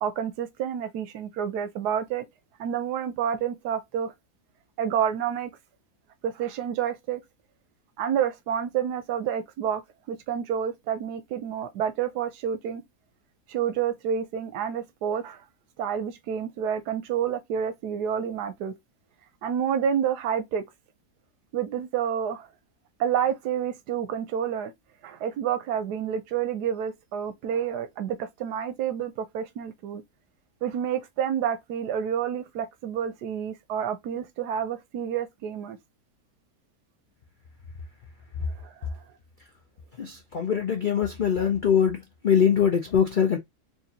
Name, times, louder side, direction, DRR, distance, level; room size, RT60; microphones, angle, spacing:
voice 1, 0.0-2.3 2.6-4.1 4.8-5.5 6.2-7.2 8.0-9.8 10.1-12.8 13.5-15.4 15.8-18.7 19.4-20.6 21.5-22.5 23.0-24.7 25.0-30.0 30.6-35.8 38.6-38.7, right 8 dB, 90° right, 1.3 m, -29 dB
voice 2, 40.0-43.4, left 8 dB, 60° left, 0.5 m, -23 dB
4.5 x 2.7 x 2.8 m
omnidirectional pair, 1.7 m